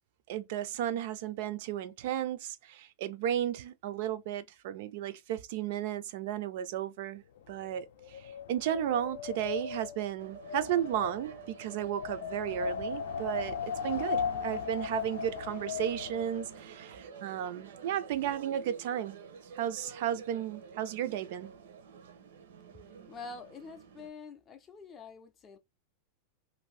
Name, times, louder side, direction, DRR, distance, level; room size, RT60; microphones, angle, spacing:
voice 1, 0.3-19.2 19.5-21.5, right 10 dB, 50° right, 0.3 m, -34 dB
Wind, 7.4-16.6, left 6 dB, 80° left, 0.5 m, -38 dB
sound 1, 10.2-24.1, right 7 dB, 75° right, 0.7 m, -50 dB
voice 2, 23.1-25.6, left 4 dB, 20° left, 0.4 m, -46 dB
2.6 x 2.6 x 3.1 m
supercardioid pair, 175°, 0 cm